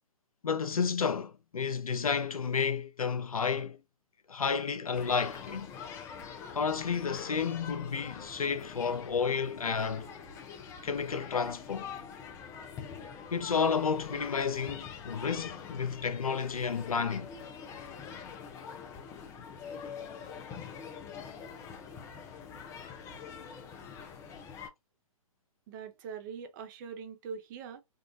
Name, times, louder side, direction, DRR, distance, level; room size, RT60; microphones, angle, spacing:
voice 1, 0.4-3.8 4.3-5.7 6.5-10.1 10.8-11.9 13.3-17.3, left 6 dB, 85° left, 0.6 m, -31 dB
sound 1, 4.9-24.7, left 6 dB, 15° left, 0.5 m, -45 dB
voice 2, 25.7-27.8, right 6 dB, 35° right, 0.7 m, -42 dB
3.7 x 2.4 x 2.5 m
figure-of-eight pair, 130°, 18 cm